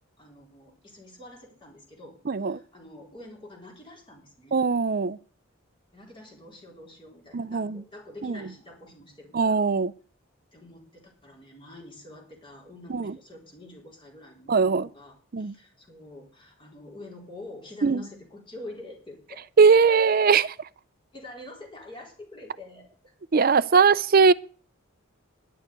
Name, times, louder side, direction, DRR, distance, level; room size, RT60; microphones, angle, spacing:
voice 1, 0.2-4.6 5.9-9.6 10.5-19.4 20.3-20.4 21.1-23.1, left 1 dB, 25° left, 4.0 m, -46 dB
voice 2, 2.3-2.6 4.5-5.2 7.3-7.8 8.2-8.4 9.3-9.9 12.9-13.1 14.5-14.9 15.3-15.5 17.8-18.0 19.6-20.5 23.3-24.3, right 5 dB, 45° right, 0.5 m, -20 dB
11.0 x 6.9 x 9.4 m
head